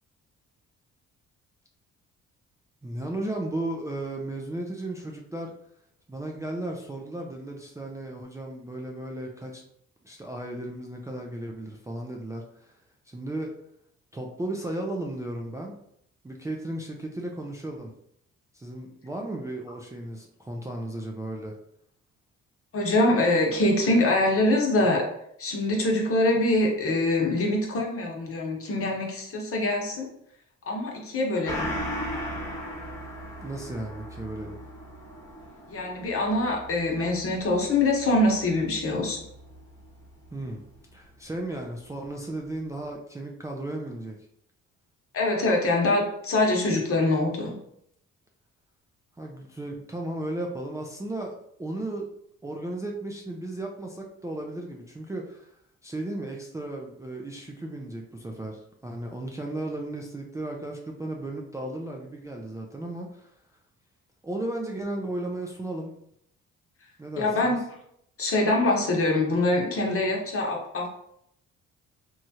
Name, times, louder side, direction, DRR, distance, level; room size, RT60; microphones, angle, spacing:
voice 1, 2.8-5.5 6.1-9.6 10.0-12.7 13.1-13.5 14.1-15.8 16.2-17.9 18.5-21.5 33.4-34.6 40.3-40.6 40.9-44.2 49.2-51.3 51.6-52.1 52.4-55.6 55.8-63.3 64.2-65.9 67.0-67.6, right 1 dB, 10° right, 0 dB, 0.4 m, -35 dB
voice 2, 22.7-25.0 25.4-30.1 30.7-31.7 35.7-39.2 45.1-47.5 67.2-67.6 68.2-70.9, left 2 dB, 50° left, 0 dB, 0.9 m, -24 dB
Gong, 31.4-40.4 40.8-40.9, equal, 10° left, 1.1 m, -38 dB
3.0 x 2.3 x 2.7 m, 0.73 s
cardioid pair, 90°, 30 cm